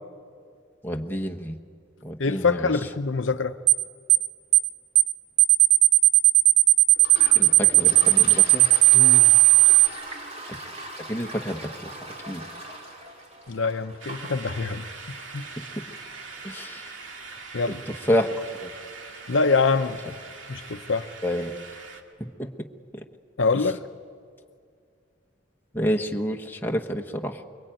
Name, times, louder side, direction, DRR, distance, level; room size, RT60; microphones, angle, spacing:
voice 1, 0.8-1.6 2.0-2.7 7.3-8.6 11.1-12.0 12.3-12.4 15.6-15.8 16.4-16.9 17.7-17.8 18.1-18.7 21.2-21.5 22.4-22.5 22.9-23.0 25.7-27.4, equal, 10° left, 2 dB, 1.3 m, -29 dB
voice 2, 2.2-3.5 8.9-9.3 13.5-14.8 15.3-15.5 17.5-17.8 19.3-20.2 20.5-21.1 23.4-23.8, left 4 dB, 75° left, 9 dB, 0.8 m, -25 dB
sound 1, 3.7-3.8 4.1-4.3 4.5-4.7 5.0-5.1 5.4-9.9, right 17 dB, 65° right, 0.9 m, -16 dB
Toilet flush, 6.9-20.3, right 1 dB, 35° right, 3.4 m, -42 dB
sound 2, 14.0-22.0, right 4 dB, 85° right, 2.2 m, -42 dB
24.5 x 23.0 x 9.1 m, 2.2 s
head